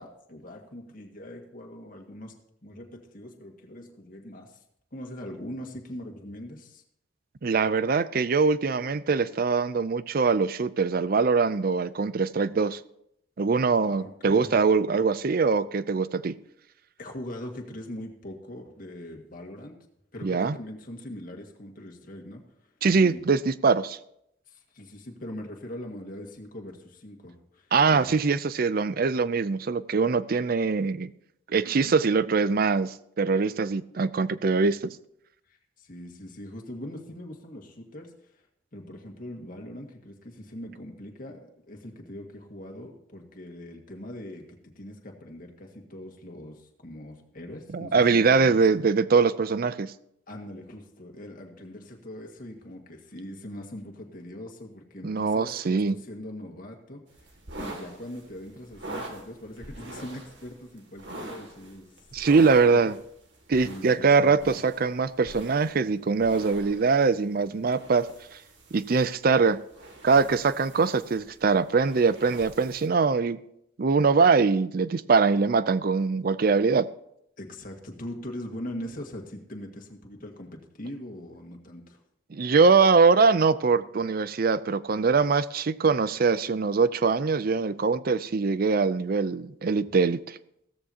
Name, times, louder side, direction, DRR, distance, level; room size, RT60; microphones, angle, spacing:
voice 1, 0.0-2.3 2.6-4.6 4.9-6.8 13.8-14.6 17.0-19.8 20.1-22.4 22.9-23.3 24.5-28.1 35.5-38.5 38.7-48.8 50.3-57.3 57.6-61.9 62.8-62.9 63.6-64.5 77.4-82.0, left 1 dB, 45° left, 1.9 m, -41 dB
voice 2, 7.4-12.8 13.4-16.4 20.2-20.6 22.8-24.0 27.7-31.1 31.5-35.0 47.7-49.9 55.0-56.0 62.1-62.9 63.5-68.1 68.7-69.6 70.0-73.4 73.8-76.9 82.3-90.4, right 4 dB, 50° right, 0.5 m, -23 dB
sound 1, 57.1-72.9, right 2 dB, 65° right, 2.4 m, -44 dB
15.5 x 14.0 x 2.9 m
head